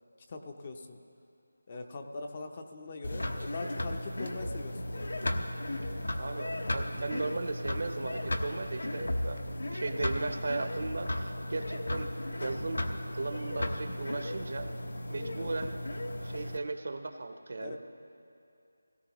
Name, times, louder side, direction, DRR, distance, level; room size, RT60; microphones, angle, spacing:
voice 1, 0.3-1.0 1.7-5.2 15.1-15.5 17.6-17.8, left 3 dB, 25° left, 5 dB, 0.6 m, -42 dB
sound 1, 3.0-16.6, left 1 dB, 75° left, 1.0 m, -35 dB
voice 2, 6.2-9.4 9.7-12.1 12.4-12.8 13.1-14.7 15.1-15.7 16.2-17.8, right 3 dB, 50° right, 7 dB, 0.8 m, -36 dB
17.5 x 16.5 x 3.0 m, 2.5 s
figure-of-eight pair, 175°, 0 cm